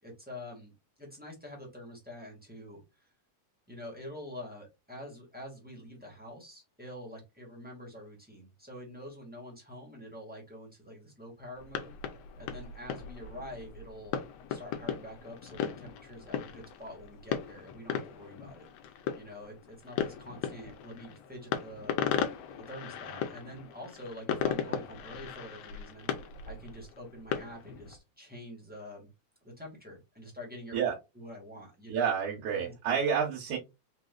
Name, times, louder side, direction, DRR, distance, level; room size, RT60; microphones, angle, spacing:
voice 1, 0.0-3.1 3.7-11.9 12.4-22.0 22.2-29.1 29.4-30.8 31.1-32.0 32.5-33.0, left 1 dB, 5° right, -1 dB, 1.1 m, -46 dB
sound 1, 11.6-28.0, left 8 dB, 70° left, 1.8 m, -37 dB
voice 2, 31.9-33.6, right 7 dB, 85° right, -1 dB, 2.6 m, -29 dB
4.7 x 4.0 x 2.4 m, 0.23 s
omnidirectional pair, 3.4 m